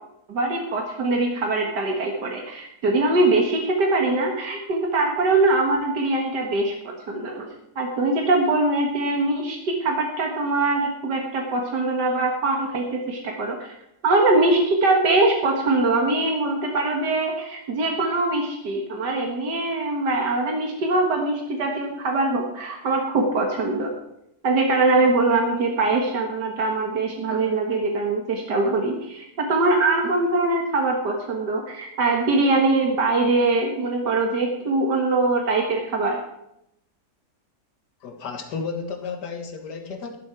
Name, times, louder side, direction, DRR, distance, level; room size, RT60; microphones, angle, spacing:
voice 1, 0.3-7.5 7.8-13.7 14.0-23.9 24.4-36.2, right 2 dB, 85° right, 1 dB, 2.2 m, -22 dB
voice 2, 38.0-40.2, left 5 dB, 85° left, 5 dB, 2.0 m, -32 dB
12.5 x 11.5 x 4.6 m, 0.81 s
omnidirectional pair, 1.8 m